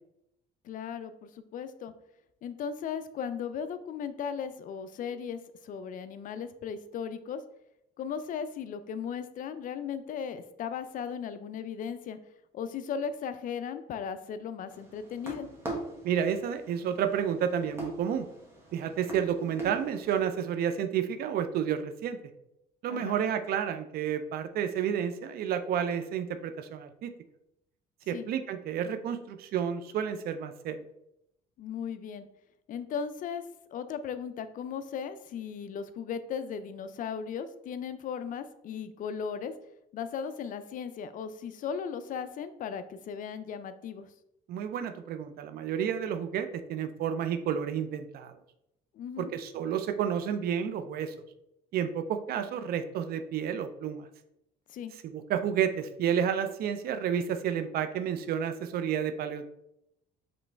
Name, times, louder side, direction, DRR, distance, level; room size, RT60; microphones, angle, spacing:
voice 1, 0.6-1.9 2.4-7.4 8.0-12.2 12.5-15.5 22.9-23.2 28.1-28.3 31.6-32.3 32.7-33.4 33.7-39.5 39.9-44.1 48.9-49.3 54.7-54.9, left 7 dB, 50° left, 11 dB, 0.4 m, -37 dB
sound 1, 14.7-20.3, right 2 dB, 15° right, 1.4 m, -42 dB
voice 2, 16.0-18.3 18.7-22.2 22.8-27.1 28.1-30.8 44.5-48.3 49.2-51.1 51.7-54.1 55.0-59.5, right 8 dB, 65° right, 10 dB, 0.5 m, -30 dB
5.0 x 3.1 x 3.3 m, 0.83 s
cardioid pair, 110°, 17 cm